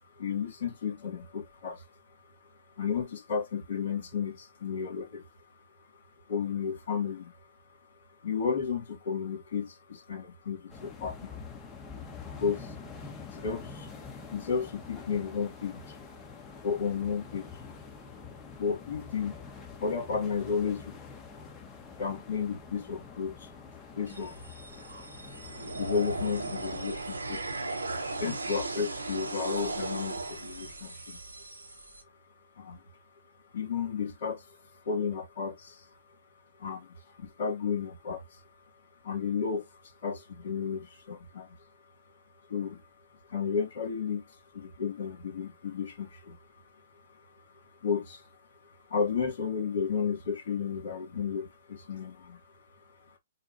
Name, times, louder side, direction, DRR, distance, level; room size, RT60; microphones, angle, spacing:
voice 1, 0.2-1.8 2.8-5.2 6.3-7.3 8.2-11.4 12.2-12.7 13.3-13.9 14.3-15.9 16.6-17.5 18.6-19.4 19.8-20.9 22.0-23.5 24.0-24.3 25.7-27.4 28.2-31.2 32.6-32.8 33.5-34.4 34.8-35.9 36.6-38.4 39.0-39.6 40.0-41.6 42.5-42.8 43.3-44.2 44.5-46.4 47.8-48.2 48.9-52.4, left 6 dB, 55° left, 2.5 m, -33 dB
sound 1, 10.7-26.9, left 5 dB, 10° left, 1.4 m, -46 dB
sound 2, 24.1-32.0, right 2 dB, 85° right, 1.3 m, -37 dB
6.7 x 2.4 x 2.7 m
figure-of-eight pair, 125°, 0 cm